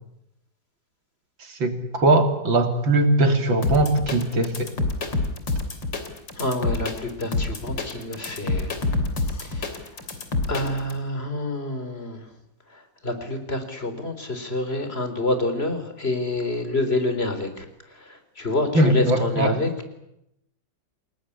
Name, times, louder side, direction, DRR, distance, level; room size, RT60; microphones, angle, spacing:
voice 1, 1.6-4.7 18.7-19.6, right 2 dB, 80° right, 6 dB, 3.8 m, -20 dB
sound 1, 3.6-10.9, left 3 dB, 70° left, 3.8 m, -27 dB
voice 2, 6.4-8.7 9.4-9.8 10.5-12.3 12.7-19.9, left 2 dB, 30° left, 9 dB, 4.1 m, -28 dB
29.0 x 19.0 x 9.9 m, 0.83 s
omnidirectional pair, 2.1 m